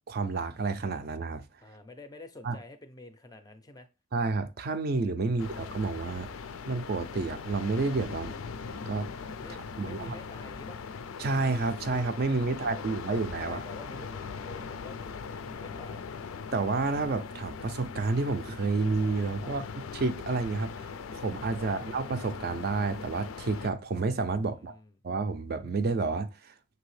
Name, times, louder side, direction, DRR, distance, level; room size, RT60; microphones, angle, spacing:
voice 1, 0.0-1.4 2.4-2.6 4.1-6.3 6.7-8.3 8.7-9.1 9.8-10.2 11.2-13.6 16.5-19.6 19.9-24.8 25.0-26.5, right 3 dB, 45° right, 0.4 m, -30 dB
voice 2, 1.6-3.9 9.4-10.8 12.6-16.0 19.4-19.6 21.6-21.8 24.5-25.0, left 1 dB, 20° left, 0.4 m, -49 dB
sound 1, 5.4-23.7, left 5 dB, 85° left, 0.4 m, -40 dB
6.0 x 2.8 x 3.1 m
head